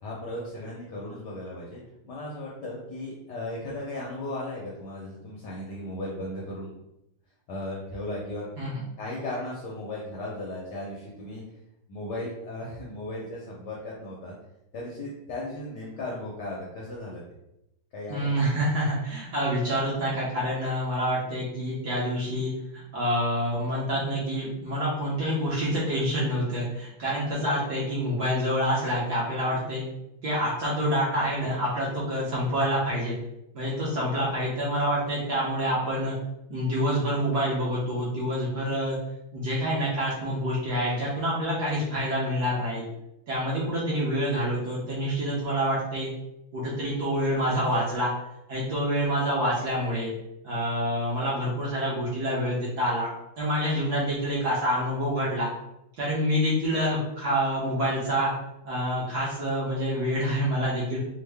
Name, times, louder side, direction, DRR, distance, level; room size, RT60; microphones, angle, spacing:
voice 1, 0.0-6.7 7.5-8.5 9.0-11.4 11.9-14.3 14.7-17.2 17.9-18.4 31.2-31.5 56.7-56.8, left 1 dB, 70° left, -4 dB, 1.0 m, -36 dB
voice 2, 18.1-29.9 30.2-33.1 33.5-36.2 36.5-39.0 39.3-42.8 43.3-46.1 46.5-48.1 48.5-50.1 50.4-53.1 53.4-55.5 56.0-58.3 58.6-61.0, equal, 65° right, -6 dB, 1.1 m, -27 dB
3.6 x 2.1 x 3.2 m, 0.86 s
omnidirectional pair, 2.4 m